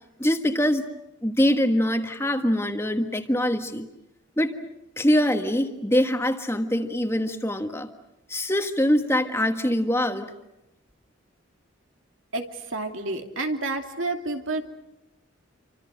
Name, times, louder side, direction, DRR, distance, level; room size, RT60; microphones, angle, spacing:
voice 1, 0.2-0.8 1.2-3.9 4.4-4.6 5.0-7.9 8.3-10.3, equal, 10° left, 6 dB, 1.5 m, -23 dB
voice 2, 12.3-14.6, right 2 dB, 75° right, 4 dB, 2.8 m, -29 dB
29.0 x 25.0 x 6.5 m, 0.92 s
head